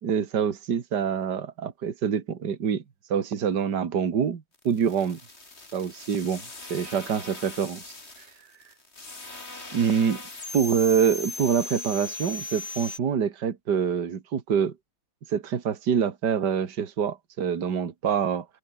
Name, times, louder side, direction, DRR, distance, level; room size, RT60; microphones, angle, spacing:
voice 1, 0.0-2.8 3.1-5.2 5.7-6.4 6.7-8.3 9.7-10.2 10.5-14.7 15.3-18.5, right 7 dB, 60° right, 2.4 m, -26 dB
sound 1, 4.5-13.0, left 3 dB, 30° left, 3.7 m, -39 dB
open air
omnidirectional pair, 2.1 m